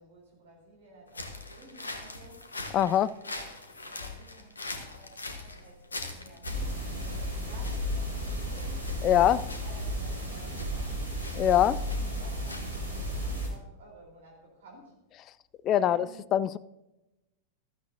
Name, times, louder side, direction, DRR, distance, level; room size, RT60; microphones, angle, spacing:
voice 1, 0.0-2.5 3.0-11.1 11.7-14.9 15.7-16.2, right 2 dB, 60° right, 3.8 m, -53 dB
sound 1, 1.1-13.1, left 2 dB, 75° left, 1.3 m, -43 dB
voice 2, 2.7-3.1 9.0-9.4 11.4-11.8 15.6-16.0 16.3-16.6, left 11 dB, 35° left, 0.3 m, -22 dB
sound 2, 6.4-13.5, equal, 85° right, 2.4 m, -33 dB
15.0 x 13.0 x 2.7 m
figure-of-eight pair, 90°, 0 cm